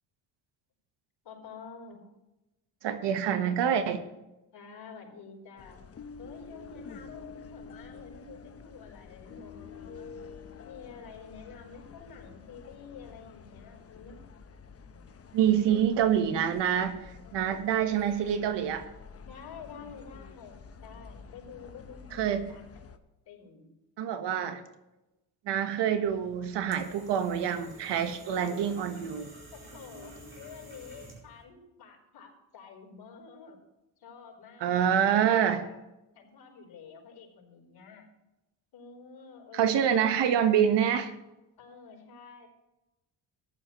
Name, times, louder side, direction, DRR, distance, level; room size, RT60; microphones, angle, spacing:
voice 1, 1.2-2.1 4.5-5.8 6.2-10.1 10.6-14.2 15.4-16.1 17.2-17.7 19.2-22.7 23.3-23.7 24.2-24.6 28.3-28.7 29.5-33.6 34.0-34.9 35.3-35.8 36.1-38.1 38.7-40.3 41.6-42.5, left 6 dB, 60° left, -1 dB, 4.4 m, -49 dB
voice 2, 2.8-4.0 15.3-18.8 22.1-22.5 24.0-24.6 25.4-29.3 34.6-35.7 39.5-41.1, right 9 dB, 70° right, 9 dB, 1.4 m, -26 dB
sound 1, 5.6-23.0, left 5 dB, 35° left, 1.0 m, -49 dB
sound 2, 26.0-31.4, right 2 dB, 25° right, 4.8 m, -50 dB
15.0 x 11.0 x 3.1 m, 0.99 s
cardioid pair, 95°, 43 cm